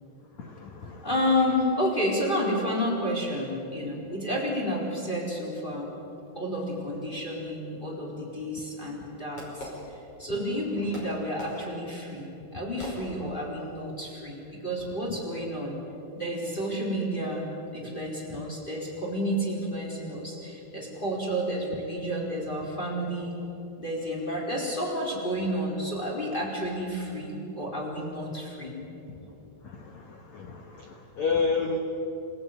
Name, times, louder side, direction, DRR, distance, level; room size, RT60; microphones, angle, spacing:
voice 1, 0.4-1.1 29.2-29.3 29.6-31.8, left 4 dB, 90° left, 4 dB, 1.6 m, -31 dB
voice 2, 1.0-5.9 6.3-15.8 16.1-23.4 23.8-28.8, equal, 10° left, -2 dB, 3.9 m, -30 dB
Fireworks, 8.3-10.5 10.9-13.6, left 1 dB, 30° left, 6.1 m, -43 dB
27.0 x 17.5 x 9.3 m, 2.9 s
omnidirectional pair, 5.5 m